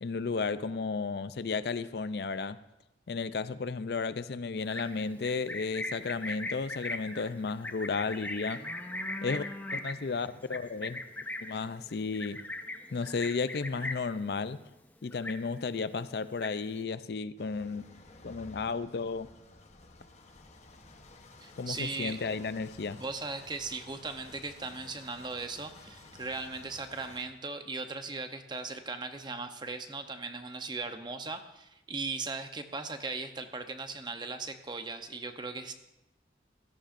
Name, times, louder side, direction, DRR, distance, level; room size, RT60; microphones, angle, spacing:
voice 1, 0.0-2.6 3.1-8.6 9.2-9.4 9.7-11.0 11.4-12.4 12.9-14.6 15.0-17.8 18.2-19.3 21.6-23.0, left 4 dB, 60° left, 0.5 m, -33 dB
Livestock farm animals working animals, 4.6-14.2 14.5-14.9 15.1-15.8 16.1-16.8, left 2 dB, 10° left, 0.6 m, -39 dB
sound 1, 17.4-27.3, left 3 dB, 40° left, 1.0 m, -54 dB
voice 2, 21.4-22.2 23.0-35.7, right 3 dB, 25° right, 0.8 m, -38 dB
17.0 x 14.5 x 2.6 m
head